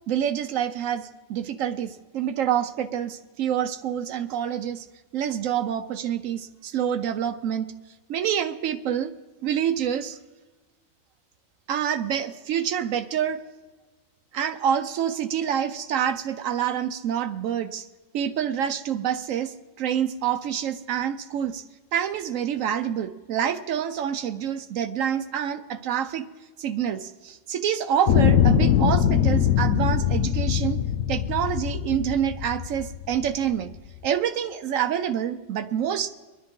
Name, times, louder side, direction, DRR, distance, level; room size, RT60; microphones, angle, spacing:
voice 1, 0.1-4.9 5.1-7.7 8.1-9.1 9.4-10.2 11.7-13.4 14.3-17.9 18.1-21.6 21.9-26.3 26.6-30.8 31.1-33.7 34.0-36.1, right 9 dB, 80° right, 9 dB, 1.0 m, -27 dB
sound 1, 28.1-33.3 34.0-34.1, left 9 dB, 80° left, 1.0 m, -22 dB
24.0 x 10.5 x 3.7 m, 1.2 s
omnidirectional pair, 1.4 m